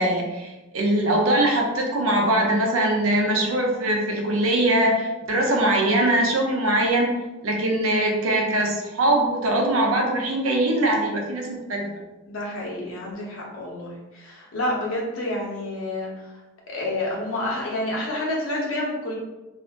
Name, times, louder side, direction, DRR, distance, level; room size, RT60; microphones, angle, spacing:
voice 1, 0.0-7.1 7.4-11.9, right 1 dB, 80° right, 1 dB, 0.7 m, -22 dB
voice 2, 12.3-16.3 16.7-19.1, left 1 dB, 75° left, -3 dB, 1.0 m, -29 dB
2.6 x 2.6 x 3.4 m, 1.1 s
head